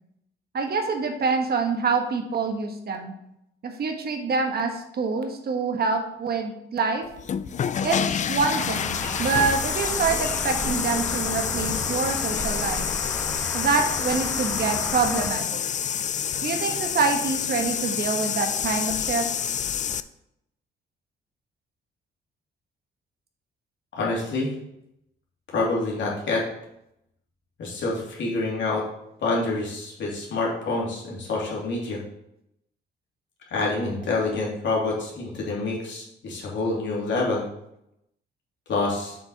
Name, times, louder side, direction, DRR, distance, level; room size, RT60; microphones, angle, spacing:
voice 1, 0.5-3.1 3.6-7.0 7.8-12.9 13.5-15.6 16.4-19.3, right 4 dB, 50° right, 5 dB, 1.3 m, -26 dB
sound 1, 7.1-20.0, left 8 dB, 40° left, 0.4 m, -28 dB
sound 2, 8.6-15.3, left 1 dB, 10° left, 1.9 m, -33 dB
voice 2, 23.9-24.5 25.5-26.4 27.6-28.8 29.2-32.0 33.5-37.4 38.7-39.2, left 3 dB, 65° left, -3 dB, 2.8 m, -27 dB
7.1 x 6.0 x 4.1 m, 0.80 s
cardioid pair, 90°, 20 cm